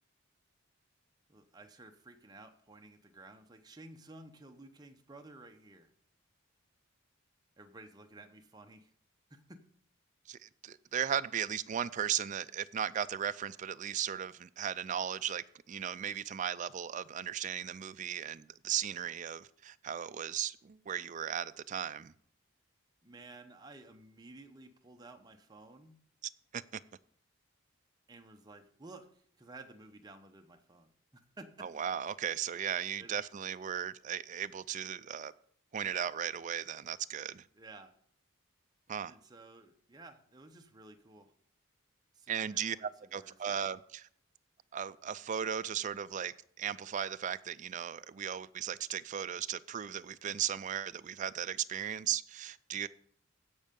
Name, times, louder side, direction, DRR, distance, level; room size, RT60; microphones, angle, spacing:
voice 1, 1.3-5.9 7.6-8.9 9.3-9.6 23.0-26.0 28.1-31.5 33.0-33.2 37.5-37.9 38.9-41.3 42.1-43.6, right 2 dB, 20° right, 0.8 m, -54 dB
voice 2, 10.3-22.1 26.5-26.6 31.6-35.3 35.7-37.4 38.9-39.1 42.3-44.1 44.7-52.9, right 9 dB, 35° right, 0.3 m, -36 dB
16.0 x 5.5 x 5.2 m
head